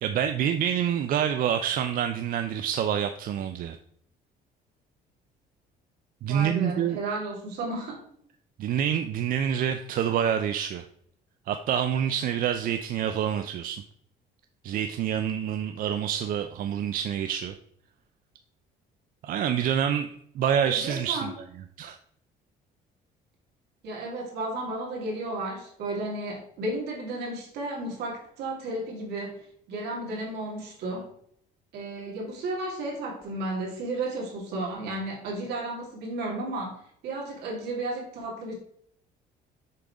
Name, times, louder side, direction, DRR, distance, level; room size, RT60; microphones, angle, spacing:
voice 1, 0.0-3.8 6.2-7.0 8.6-10.8 11.5-13.8 14.6-17.5 19.2-21.3 21.8-22.0, right 9 dB, 55° right, 8 dB, 0.5 m, -27 dB
voice 2, 6.3-8.0 20.6-21.4 23.8-31.1 31.7-38.5, right 2 dB, 80° right, -1 dB, 2.4 m, -33 dB
6.7 x 3.9 x 4.8 m, 0.67 s
cardioid pair, 110°, 17 cm